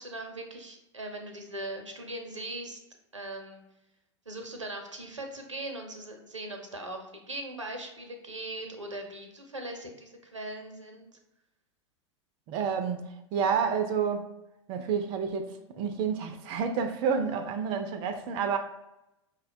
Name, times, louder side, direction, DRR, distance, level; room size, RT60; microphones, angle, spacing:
voice 1, 0.0-2.8 3.1-3.6 4.3-11.1, right 1 dB, 90° right, 0.6 m, -40 dB
voice 2, 12.5-14.3 14.7-18.6, right 6 dB, 35° right, 0.4 m, -29 dB
5.1 x 2.1 x 2.6 m
figure-of-eight pair, 90°, 15 cm